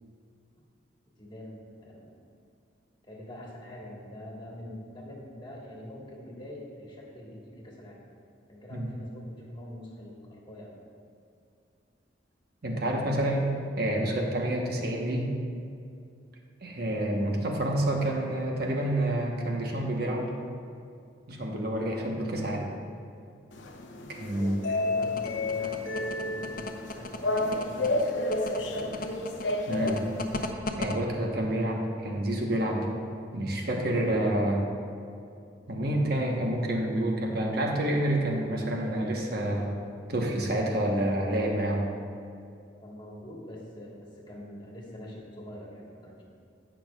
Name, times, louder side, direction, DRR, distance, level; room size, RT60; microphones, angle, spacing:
voice 1, 1.2-2.1 3.1-8.0 8.5-10.8 24.4-29.2 42.8-46.2, left 1 dB, 25° left, -3 dB, 1.6 m, -44 dB
voice 2, 12.6-13.4 13.8-15.3 16.6-20.3 21.3-22.7 24.1-24.6 29.7-30.0 30.7-32.9 33.3-34.6 35.7-39.7 40.1-41.9, right 1 dB, 60° right, 0 dB, 1.2 m, -28 dB
sound 1, 23.5-30.5, left 2 dB, 90° left, 0.7 m, -31 dB
sound 2, 25.0-30.9, left 2 dB, 50° left, 0.6 m, -36 dB
15.5 x 6.1 x 2.4 m, 2.5 s
head